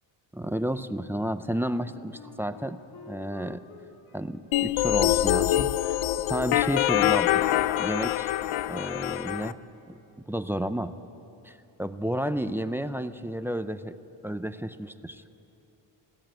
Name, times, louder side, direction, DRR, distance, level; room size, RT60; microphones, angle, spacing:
voice 1, 0.3-2.8 3.1-3.6 4.1-6.0 6.3-7.4 7.8-8.3 8.6-9.6 9.9-10.0 10.3-10.9 11.4-14.0 14.2-15.3, equal, 5° right, 12 dB, 0.4 m, -31 dB
Wind instrument woodwind instrument, 1.7-7.6, left 3 dB, 45° left, 2.8 m, -49 dB
sound 1, 4.5-9.5, left 14 dB, 80° left, 0.7 m, -25 dB
21.5 x 16.5 x 9.0 m, 2.9 s
cardioid pair, 125°, 47 cm